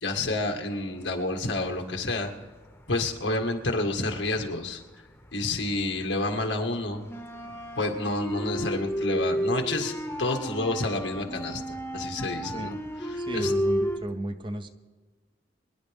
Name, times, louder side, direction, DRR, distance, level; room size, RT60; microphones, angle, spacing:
voice 1, 0.0-2.3 2.9-4.8 5.3-7.0 7.7-13.5, left 2 dB, 90° left, 3 dB, 1.8 m, -29 dB
sound 1, 1.3-2.2 2.5-5.5 5.8-14.0, equal, 10° left, 1.0 m, -32 dB
voice 2, 13.2-14.7, right 1 dB, 25° right, 9 dB, 0.7 m, -34 dB
25.0 x 11.0 x 3.6 m, 1.4 s
head